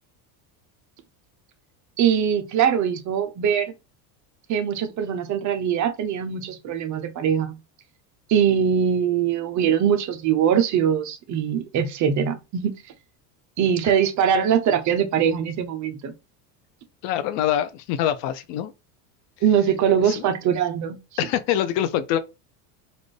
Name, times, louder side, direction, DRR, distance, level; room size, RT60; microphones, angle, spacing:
voice 1, 2.0-3.7 4.5-7.6 8.3-12.7 13.6-16.1 19.4-21.0, right 8 dB, 35° right, 0.6 m, -22 dB
voice 2, 17.0-18.7 20.1-20.2 21.2-22.2, left 11 dB, 60° left, 0.6 m, -24 dB
4.1 x 2.4 x 3.2 m
supercardioid pair, 125°, 49 cm